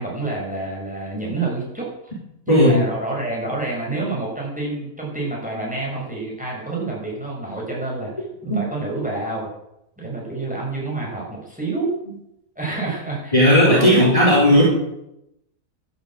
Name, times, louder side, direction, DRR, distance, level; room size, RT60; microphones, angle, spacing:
voice 1, 0.0-1.9 2.5-8.1 8.4-9.5 10.0-11.9 12.5-14.1, right 3 dB, 5° right, -3 dB, 6.8 m, -28 dB
voice 2, 2.5-2.8 8.5-8.6 13.3-14.6, equal, 20° left, -5 dB, 4.1 m, -14 dB
14.5 x 12.0 x 7.8 m, 0.85 s
omnidirectional pair, 1.7 m